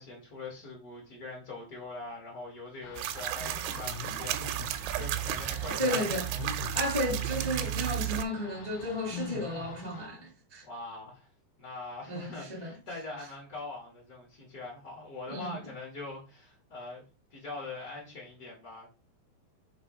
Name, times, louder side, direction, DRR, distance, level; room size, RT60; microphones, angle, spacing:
voice 1, 0.0-6.4 10.6-11.3 11.6-17.0 17.3-18.9, left 3 dB, 65° left, 0.8 m, -43 dB
sound 1, 2.8-10.1, left 6 dB, 90° left, 3.1 m, -44 dB
sound 2, 3.0-8.2, right 14 dB, 85° right, 2.8 m, -33 dB
voice 2, 5.8-6.2 6.7-10.6 12.1-12.7 15.3-15.5, left 1 dB, 35° left, 0.6 m, -33 dB
6.7 x 3.0 x 5.2 m
omnidirectional pair, 5.0 m